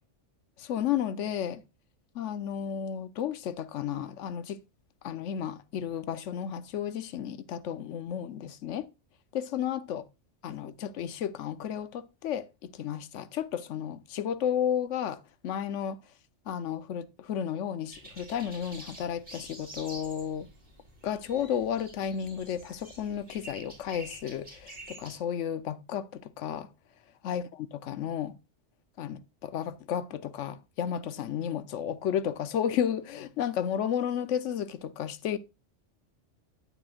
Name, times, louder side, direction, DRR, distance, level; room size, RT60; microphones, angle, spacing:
voice 1, 0.6-1.6 2.1-4.6 5.0-8.9 9.3-10.0 10.4-16.0 16.5-20.5 21.0-26.7 27.2-27.4 27.9-28.3 29.0-35.4, left 9 dB, 80° left, 1.0 m, -32 dB
sound 1, 17.9-25.2, right 1 dB, 45° right, 3.9 m, -48 dB
9.9 x 7.0 x 2.4 m
omnidirectional pair, 1.2 m